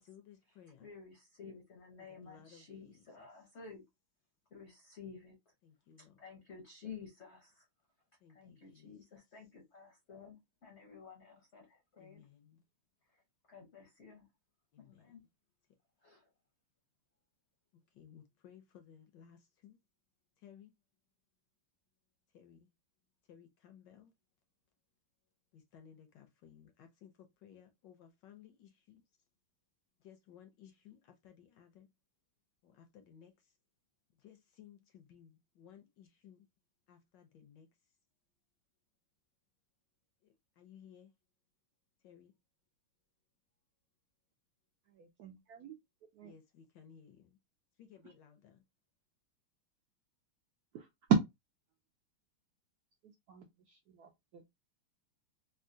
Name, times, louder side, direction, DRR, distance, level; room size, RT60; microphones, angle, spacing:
voice 1, 0.0-0.9 2.0-3.3 5.6-6.2 8.2-9.0 12.0-12.6 14.7-15.3 17.7-19.8 20.4-20.7 22.3-22.7 23.3-24.1 25.5-29.0 30.0-31.9 32.6-33.6 34.1-36.5 36.9-37.8 40.2-41.1 42.0-42.3 46.2-47.4 47.8-48.6, left 8 dB, 75° left, 1.1 m, -59 dB
voice 2, 0.8-3.8 4.5-5.3 6.2-7.7 8.3-12.2 13.1-13.2 13.5-14.3 14.8-15.2 16.0-16.3, left 6 dB, 55° left, 0.7 m, -52 dB
voice 3, 44.9-45.8 46.1-46.3 50.7-50.9 53.3-54.4, right 8 dB, 85° right, 0.8 m, -54 dB
3.6 x 2.2 x 2.5 m
omnidirectional pair, 2.2 m